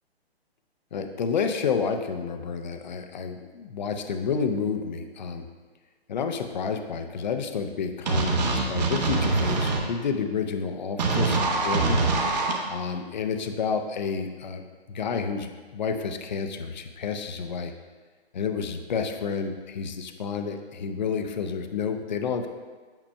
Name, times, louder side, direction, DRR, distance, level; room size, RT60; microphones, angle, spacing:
voice 1, 0.9-5.5 6.1-12.1 12.7-14.6 14.9-17.7 18.3-22.5, left 6 dB, 45° left, 7 dB, 0.5 m, -30 dB
sound 1, 8.1-9.8 11.0-12.5, right 3 dB, 40° right, 0.9 m, -24 dB
8.8 x 5.8 x 2.2 m, 1.4 s
figure-of-eight pair, 135°, 32 cm